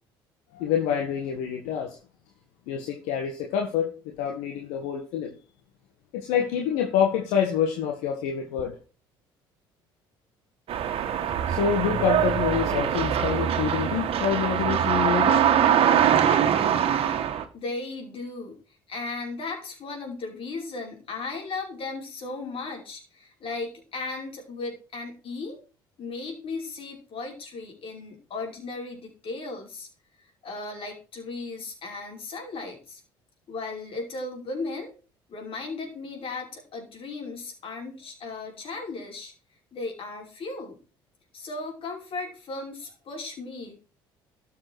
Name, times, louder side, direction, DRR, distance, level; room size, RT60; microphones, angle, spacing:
voice 1, 0.5-2.0 2.7-5.3 6.1-8.8 11.1-15.7, left 8 dB, 70° left, 1.7 m, -27 dB
sound 1, 10.7-17.4, right 9 dB, 55° right, 1.6 m, -23 dB
voice 2, 17.5-18.6 18.9-25.6 26.0-29.9 30.4-33.0 33.5-34.9 35.3-39.3 39.7-40.8 41.3-43.8, left 3 dB, 50° left, 5.5 m, -36 dB
13.0 x 7.1 x 4.8 m
hypercardioid pair, 60°, 12 cm